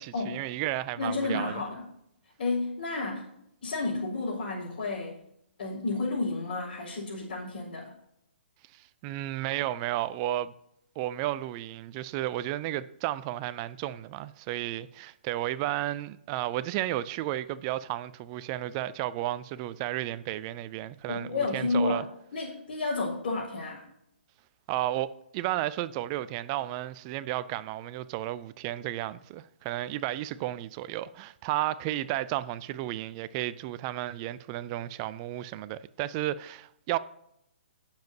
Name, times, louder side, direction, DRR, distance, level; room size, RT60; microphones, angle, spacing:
voice 1, 0.0-1.5 8.7-10.5 11.0-22.0 24.7-37.0, right 14 dB, 30° right, 0.5 m, -33 dB
voice 2, 1.0-1.8 2.4-3.3 3.6-5.2 5.6-7.9 21.1-22.0 22.3-23.8, left 3 dB, 55° left, 4.6 m, -31 dB
18.0 x 7.3 x 2.8 m
figure-of-eight pair, 130°, 6 cm